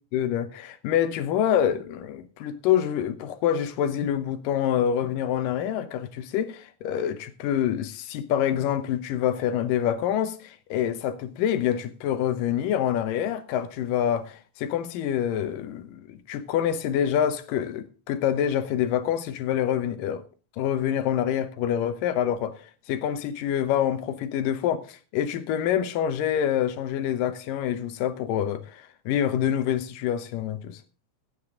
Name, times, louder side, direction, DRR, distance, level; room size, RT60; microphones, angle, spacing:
voice 1, 0.1-20.2 20.6-30.8, left 10 dB, 75° left, 2.5 m, -26 dB
15.0 x 9.0 x 3.7 m
omnidirectional pair, 4.1 m